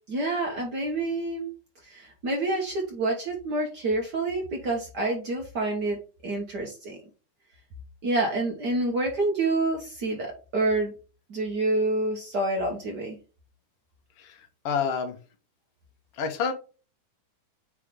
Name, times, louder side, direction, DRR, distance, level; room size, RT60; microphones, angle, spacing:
voice 1, 0.1-1.5 1.9-6.0 6.2-7.0 8.0-10.9 11.3-13.2, right 2 dB, 70° right, 0 dB, 0.9 m, -27 dB
voice 2, 14.6-15.2 16.2-16.5, left 6 dB, 65° left, 5 dB, 1.6 m, -27 dB
8.3 x 3.2 x 3.6 m, 0.35 s
omnidirectional pair, 3.7 m